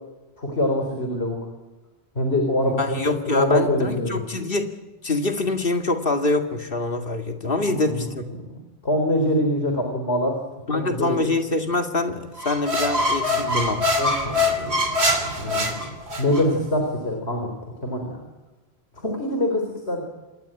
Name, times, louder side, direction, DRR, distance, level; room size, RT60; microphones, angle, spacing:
voice 1, 0.4-1.4 2.2-4.2 7.6-8.1 8.4-8.6 8.8-10.4 10.7-11.3 13.3-18.2 19.0-20.0, left 1 dB, 80° left, 3 dB, 4.1 m, -25 dB
voice 2, 2.6-4.7 5.0-8.3 10.7-13.8, left 2 dB, 60° left, 5 dB, 2.4 m, -25 dB
sound 1, 12.4-16.4, left 1 dB, 85° right, 3.2 m, -23 dB
27.0 x 22.0 x 9.0 m, 1.1 s
omnidirectional pair, 1.1 m